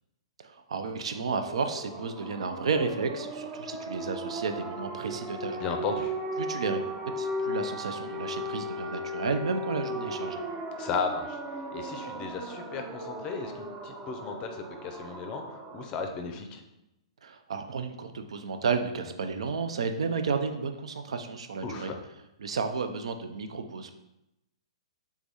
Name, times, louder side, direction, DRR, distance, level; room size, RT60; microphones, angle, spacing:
voice 1, 0.4-5.8 6.4-6.8 7.2-10.4 17.2-21.9 22.4-24.0, right 5 dB, 75° right, 7 dB, 0.5 m, -32 dB
sound 1, 1.0-15.8, equal, 30° right, 0.6 m, -36 dB
voice 2, 5.6-6.1 10.8-11.4 11.7-16.6 21.6-22.0, left 5 dB, 30° left, 5 dB, 0.5 m, -35 dB
3.5 x 3.4 x 4.0 m, 0.90 s
hypercardioid pair, 130°, 3 cm